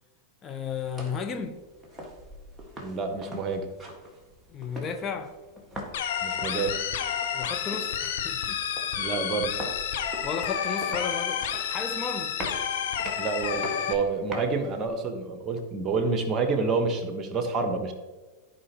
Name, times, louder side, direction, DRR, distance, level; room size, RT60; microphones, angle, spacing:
voice 1, 0.4-1.6 4.5-5.3 7.3-8.6 10.2-12.4, left 6 dB, 25° left, 0.6 m, -34 dB
sound 1, 0.7-14.9, equal, 5° right, 1.7 m, -43 dB
voice 2, 2.8-3.7 6.2-6.8 9.0-9.6 13.2-17.9, right 4 dB, 25° right, 1.2 m, -28 dB
sound 2, 5.9-13.9, left 8 dB, 55° left, 0.9 m, -30 dB
14.5 x 5.0 x 3.0 m
figure-of-eight pair, 90°, 0 cm